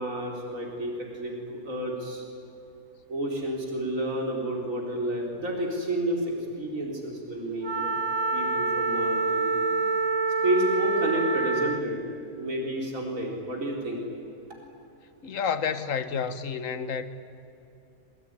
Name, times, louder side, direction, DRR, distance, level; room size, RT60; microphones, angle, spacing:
voice 1, 0.0-2.2 3.1-7.9 8.3-9.6 10.4-12.0 12.4-14.0, right 1 dB, 55° right, 4.8 m, -30 dB
Wind instrument woodwind instrument, 7.6-11.9, right 3 dB, 30° right, 0.5 m, -26 dB
voice 2, 15.2-17.1, left 6 dB, 55° left, 1.7 m, -29 dB
26.0 x 23.0 x 9.9 m
omnidirectional pair, 1.6 m